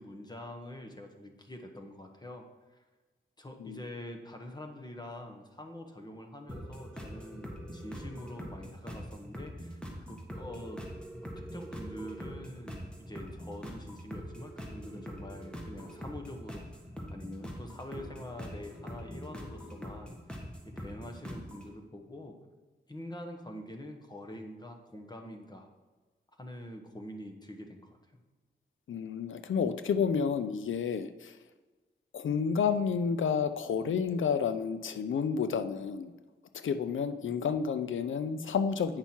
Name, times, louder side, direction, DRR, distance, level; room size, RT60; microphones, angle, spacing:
voice 1, 0.0-2.5 2.7-2.8 3.4-9.8 10.1-10.8 11.4-16.8 17.1-20.2 20.6-22.4 22.9-25.7 26.4-28.2, left 1 dB, 20° left, 3 dB, 1.2 m, -45 dB
sound 1, 6.5-21.7, equal, 5° left, 1.4 m, -43 dB
voice 2, 28.9-31.4 32.1-36.1 36.5-39.0, left 6 dB, 90° left, 10 dB, 0.5 m, -30 dB
8.6 x 5.7 x 4.4 m, 1.3 s
wide cardioid pair, 75°, 20 cm